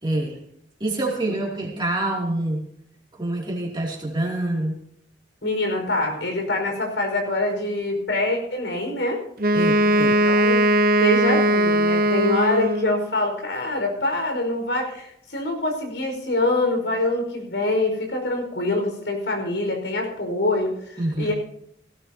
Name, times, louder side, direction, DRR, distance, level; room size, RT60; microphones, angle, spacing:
voice 1, 0.0-0.4 0.8-2.6 3.1-4.8 9.5-10.2 21.0-21.3, right 1 dB, 25° right, -3 dB, 2.9 m, -26 dB
voice 2, 5.4-9.2 10.0-10.6 11.0-21.3, left 2 dB, 90° left, 2 dB, 5.3 m, -25 dB
Wind instrument woodwind instrument, 9.4-13.1, right 1 dB, 55° right, 0.9 m, -19 dB
17.5 x 17.0 x 2.9 m, 0.72 s
head